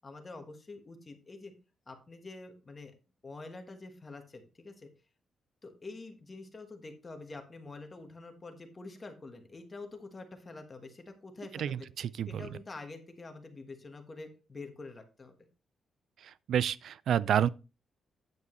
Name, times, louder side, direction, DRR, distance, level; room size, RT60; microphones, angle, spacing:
voice 1, 0.0-1.5 1.9-2.9 3.2-4.9 5.6-11.9 12.3-15.3, left 3 dB, 20° left, 1.3 m, -46 dB
voice 2, 11.5-12.5 16.2-17.5, right 9 dB, 60° right, 0.4 m, -30 dB
9.2 x 8.3 x 3.1 m
wide cardioid pair, 170°, 0 cm